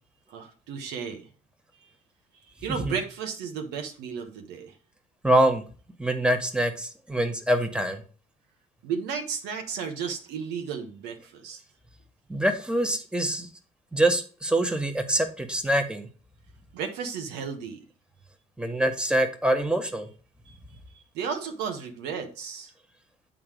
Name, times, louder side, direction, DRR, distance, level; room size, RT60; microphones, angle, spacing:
voice 1, 0.3-1.3 2.6-4.7 8.8-11.6 16.7-17.8 20.4-20.5 20.9-22.7, right 6 dB, 70° right, 5 dB, 1.2 m, -34 dB
voice 2, 5.2-5.6 6.0-8.0 12.3-13.5 13.9-16.1 18.6-20.1, right 1 dB, 5° right, 5 dB, 1.5 m, -24 dB
8.6 x 3.9 x 4.9 m, 0.38 s
hypercardioid pair, 55°, 18 cm